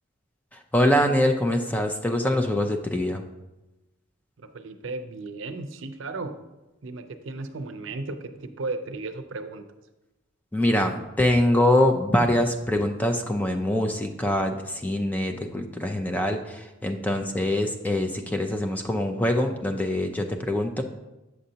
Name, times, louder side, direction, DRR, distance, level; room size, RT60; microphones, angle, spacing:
voice 1, 0.5-3.2 10.5-20.8, left 1 dB, 10° left, 4 dB, 0.4 m, -24 dB
voice 2, 4.4-6.4 6.8-9.6, right 3 dB, 70° right, 8 dB, 0.5 m, -35 dB
7.9 x 6.4 x 2.8 m, 1.0 s
head